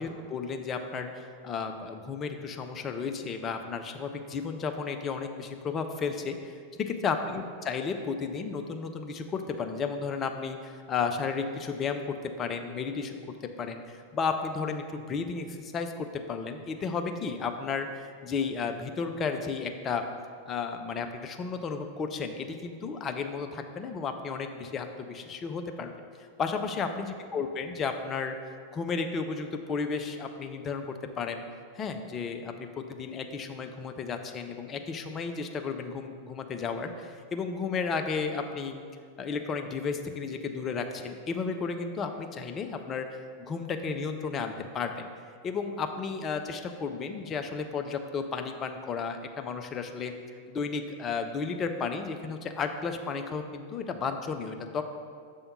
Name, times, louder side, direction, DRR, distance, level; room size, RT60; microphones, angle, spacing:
voice 1, 0.0-6.5 6.8-13.2 13.6-20.0 20.5-25.9 26.4-28.4 28.7-31.4 31.7-38.8 39.2-43.1 43.5-45.1 45.4-50.1 50.5-54.8, left 5 dB, 25° left, 6 dB, 0.5 m, -33 dB
6.8 x 3.5 x 5.4 m, 2.1 s
figure-of-eight pair, 90°, 0 cm